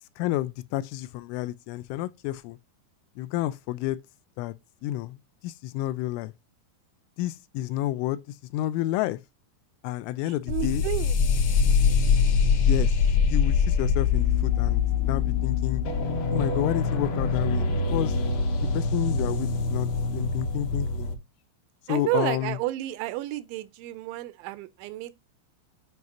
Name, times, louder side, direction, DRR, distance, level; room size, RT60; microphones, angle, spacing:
voice 1, 0.2-2.6 3.2-4.0 4.4-4.5 4.8-5.2 5.4-6.3 7.2-8.2 8.5-9.2 9.8-10.8 12.6-13.0 13.2-15.8 16.3-18.2 18.7-21.1 21.9-22.6, left 15 dB, 85° left, 3.1 m, -30 dB
voice 2, 10.3-11.2 21.9-25.1, right 17 dB, 85° right, 2.9 m, -31 dB
sound 1, 10.5-21.1, left 5 dB, 70° left, 2.7 m, -24 dB
9.4 x 4.8 x 2.7 m
omnidirectional pair, 5.5 m